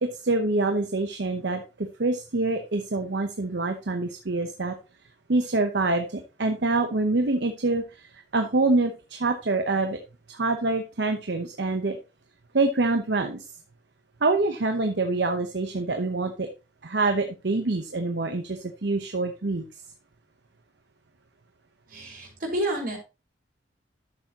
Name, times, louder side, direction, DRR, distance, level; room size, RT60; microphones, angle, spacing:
voice 1, 0.0-4.7 5.3-10.0 10.3-12.0 12.5-13.5 14.2-16.5 16.8-19.6, right 2 dB, 65° right, 6 dB, 0.9 m, -26 dB
voice 2, 21.9-23.0, right 1 dB, 50° right, -1 dB, 4.4 m, -29 dB
11.5 x 6.9 x 2.9 m, 0.29 s
head